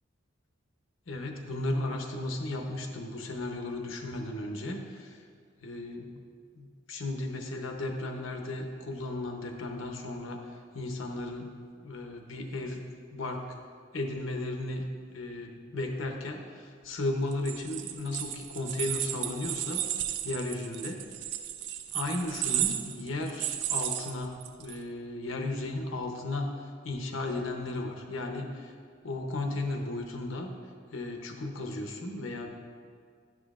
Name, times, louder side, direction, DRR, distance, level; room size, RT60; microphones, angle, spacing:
voice 1, 1.1-5.2 5.6-6.1 6.5-12.8 13.1-13.6 13.9-19.9 20.2-21.0 21.9-28.7 29.0-30.5 30.9-32.5, left 2 dB, 90° left, 3 dB, 0.8 m, -35 dB
sound 1, 17.3-24.7, right 11 dB, 60° right, 0.4 m, -33 dB
10.5 x 6.0 x 2.4 m, 2.1 s
head